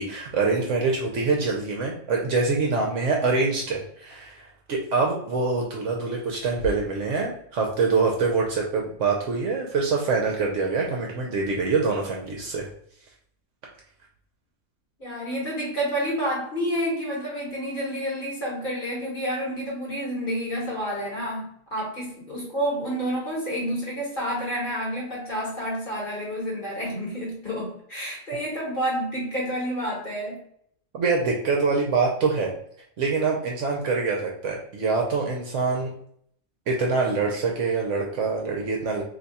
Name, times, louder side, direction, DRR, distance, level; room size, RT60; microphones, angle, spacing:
voice 1, 0.0-12.7 30.9-32.5 33.0-35.9 36.7-39.0, right 4 dB, 65° right, -1 dB, 0.9 m, -25 dB
voice 2, 15.0-30.4, equal, 35° left, -5 dB, 1.2 m, -29 dB
2.8 x 2.3 x 4.0 m, 0.66 s
omnidirectional pair, 1.6 m